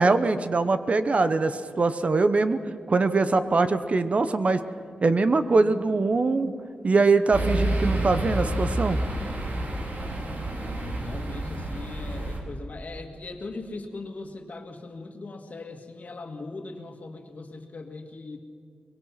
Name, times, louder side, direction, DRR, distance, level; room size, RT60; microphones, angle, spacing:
voice 1, 0.0-2.6 2.9-4.6 5.0-6.5 6.8-9.0, right 3 dB, 45° right, 11 dB, 0.9 m, -22 dB
sound 1, 7.3-12.4, right 1 dB, 60° right, 3.7 m, -29 dB
voice 2, 10.5-18.4, left 3 dB, 55° left, 5 dB, 2.0 m, -39 dB
24.0 x 21.5 x 5.8 m, 2.3 s
wide cardioid pair, 125°, 3 cm